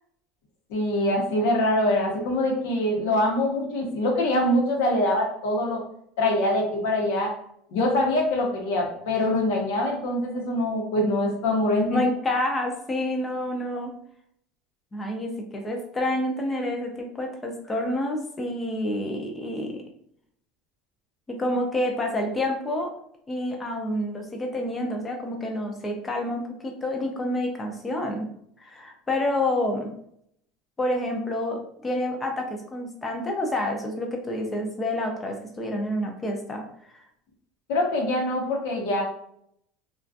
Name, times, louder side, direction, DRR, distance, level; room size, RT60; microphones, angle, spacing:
voice 1, 0.7-5.8 6.2-7.3 7.7-12.0 37.7-39.0, left 1 dB, 70° left, 0 dB, 0.8 m, -24 dB
voice 2, 11.9-13.9 14.9-19.8 21.3-22.9 23.3-28.3 28.6-29.9 30.8-36.7 36.9-37.0, left 1 dB, 15° left, 2 dB, 0.4 m, -28 dB
2.4 x 2.2 x 2.5 m, 0.70 s
cardioid pair, 170°, 0 cm